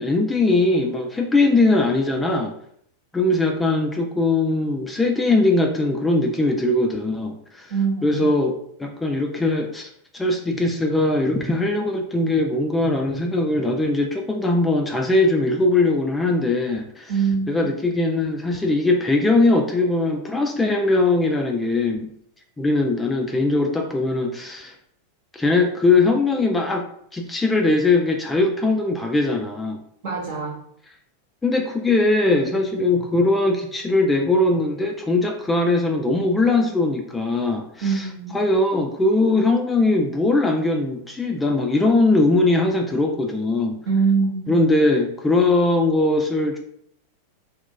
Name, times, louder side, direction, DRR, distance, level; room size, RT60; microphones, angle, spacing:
voice 1, 0.0-2.5 3.1-7.7 8.0-8.5 8.8-17.1 17.5-22.1 22.6-24.7 25.3-26.8 27.1-29.8 31.4-38.1 38.3-43.8 44.5-46.6, left 2 dB, 10° left, 2 dB, 0.3 m, -20 dB
voice 2, 7.7-8.2 17.1-17.7 30.0-30.6 37.8-38.4 43.9-44.6, right 5 dB, 50° right, -1 dB, 1.0 m, -23 dB
2.3 x 2.1 x 3.8 m, 0.69 s
figure-of-eight pair, 90°, 0 cm